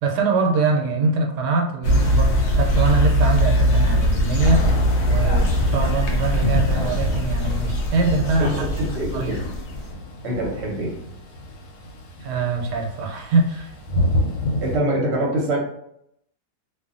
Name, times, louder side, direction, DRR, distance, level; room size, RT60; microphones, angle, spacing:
voice 1, 0.0-4.7 5.0-8.6 9.1-9.4 12.2-13.7, right 3 dB, 85° right, 2 dB, 1.2 m, -23 dB
sound 1, 1.8-9.9, equal, 70° left, 0.6 m, -21 dB
Thunder / Rain, 4.4-14.8, left 1 dB, 90° left, 1.2 m, -28 dB
voice 2, 8.4-9.4 10.2-10.9 14.6-15.6, right 1 dB, 50° right, -2 dB, 0.9 m, -24 dB
2.5 x 2.5 x 2.4 m, 0.75 s
omnidirectional pair, 1.8 m